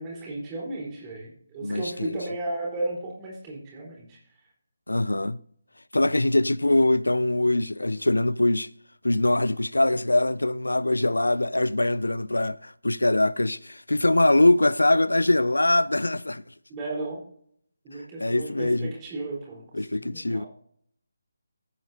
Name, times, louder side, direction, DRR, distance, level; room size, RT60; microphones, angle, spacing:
voice 1, 0.0-4.2 16.7-17.2 17.8-19.6 20.0-20.5, right 2 dB, 15° right, 4.0 m, -34 dB
voice 2, 1.6-2.2 4.9-5.4 5.9-8.7 9.0-16.4 18.2-18.9 19.7-20.4, left 2 dB, 70° left, 0.4 m, -23 dB
15.0 x 9.2 x 2.8 m
figure-of-eight pair, 150°, 0 cm